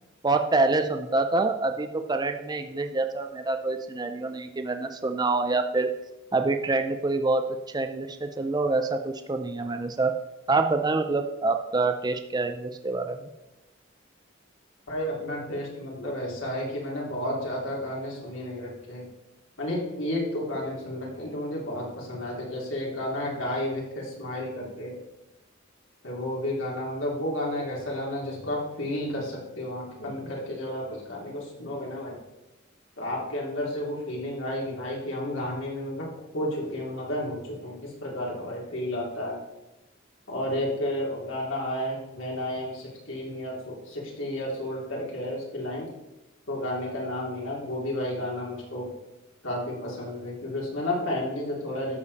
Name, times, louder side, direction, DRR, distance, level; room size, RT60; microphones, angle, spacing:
voice 1, 0.2-5.9 6.3-10.1 10.5-13.3, right 3 dB, 20° right, 6 dB, 0.5 m, -26 dB
voice 2, 14.9-19.1 19.6-25.0 26.0-32.2 33.0-39.4 40.3-45.9 46.5-48.9 49.4-52.0, left 1 dB, 75° left, -3 dB, 3.1 m, -32 dB
12.0 x 6.9 x 4.1 m, 0.97 s
head